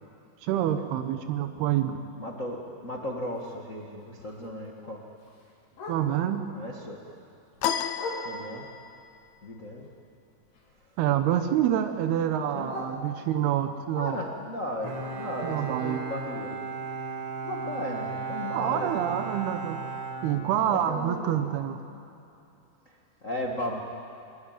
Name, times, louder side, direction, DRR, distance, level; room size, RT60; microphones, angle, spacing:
voice 1, 0.4-2.1 5.9-6.5 11.0-14.2 15.4-16.0 18.5-19.9 20.2-21.8, right 10 dB, 85° right, 8 dB, 3.0 m, -27 dB
voice 2, 2.1-5.0 6.5-7.0 8.2-8.7 9.4-9.9 12.2-12.7 14.0-16.6 17.4-18.9 20.6-21.4 21.6-21.8 22.8-23.8, left 1 dB, 45° left, 0 dB, 0.9 m, -36 dB
Bark, 3.2-6.4 6.8-8.7 9.2-11.0 11.3-13.6 14.1-18.0 18.3-18.4 18.7-19.1 19.5-19.6 20.0-20.1 20.6-20.7, left 2 dB, 85° left, 6.0 m, -45 dB
sound 1, 7.6-9.0, left 9 dB, 65° left, 1.9 m, -31 dB
Bowed string instrument, 14.8-21.0, right 4 dB, 45° right, 5.3 m, -36 dB
24.5 x 22.5 x 9.3 m, 2.7 s
omnidirectional pair, 4.5 m